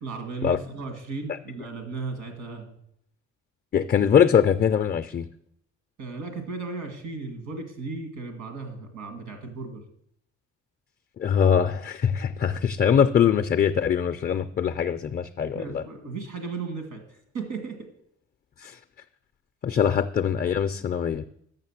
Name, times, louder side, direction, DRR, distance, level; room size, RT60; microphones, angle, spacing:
voice 1, 0.0-2.8 6.0-9.8 15.5-17.9, right 4 dB, 80° right, 5 dB, 2.0 m, -35 dB
voice 2, 3.7-5.3 11.2-15.8 18.6-18.8 19.6-21.2, left 8 dB, 35° left, 8 dB, 0.4 m, -22 dB
6.7 x 6.2 x 7.2 m, 0.72 s
cardioid pair, 90°, 30 cm